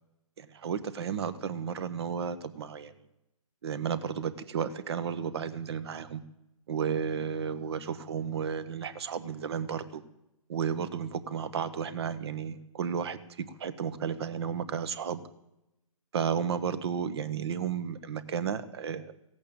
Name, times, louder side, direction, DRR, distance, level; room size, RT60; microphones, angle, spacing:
voice 1, 0.4-2.9 3.6-6.2 6.7-10.0 10.5-15.2 16.1-19.1, right 7 dB, 45° right, 14 dB, 1.1 m, -33 dB
16.0 x 8.6 x 8.8 m, 0.88 s
hypercardioid pair, 155°, 18 cm